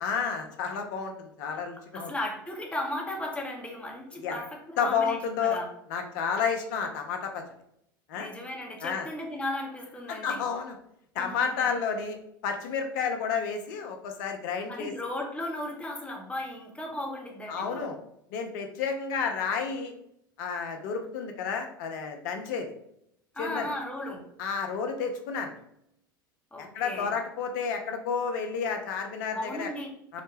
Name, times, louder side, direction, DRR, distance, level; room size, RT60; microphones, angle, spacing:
voice 1, 0.0-2.1 4.1-4.4 4.8-5.6 5.9-7.4 8.1-8.3 8.8-9.1 10.1-10.8 11.1-12.2 12.4-14.9 17.5-18.0 18.3-19.9 20.4-22.7 23.4-23.7 24.4-25.6 26.6-29.7 30.1-30.2, left 6 dB, 60° left, 4 dB, 0.7 m, -31 dB
voice 2, 1.9-5.7 8.2-10.4 11.2-11.8 14.7-17.9 23.3-24.3 26.5-27.1 29.3-30.2, left 1 dB, 10° left, 1 dB, 0.8 m, -36 dB
3.8 x 2.1 x 3.2 m, 0.75 s
hypercardioid pair, 85°, 12 cm